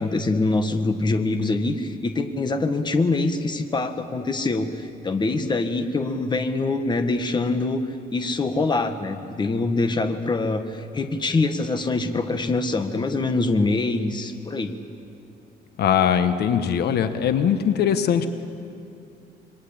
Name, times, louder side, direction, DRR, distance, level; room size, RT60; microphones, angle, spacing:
voice 1, 0.0-7.8 8.1-14.7, left 3 dB, 25° left, 8 dB, 1.5 m, -24 dB
voice 2, 15.8-18.3, left 8 dB, 70° left, 9 dB, 1.4 m, -21 dB
27.0 x 23.0 x 8.8 m, 2.6 s
cardioid pair, 130°, 17 cm